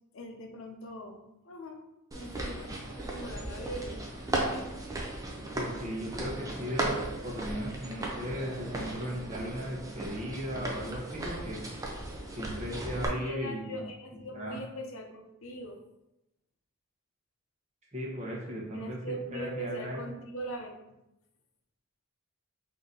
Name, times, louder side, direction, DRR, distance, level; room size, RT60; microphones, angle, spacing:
voice 1, 0.1-1.8 2.1-4.0 4.3-4.8 13.1-15.8 18.7-20.9, right 1 dB, 65° left, 3 dB, 0.7 m, -41 dB
sound 1, 2.1-13.1, right 2 dB, 15° right, 0.5 m, -36 dB
voice 2, 5.5-7.0 7.2-11.6 12.3-13.8 14.3-14.6 17.9-20.0, equal, 30° right, -3 dB, 1.0 m, -37 dB
3.9 x 2.8 x 3.8 m, 0.88 s
head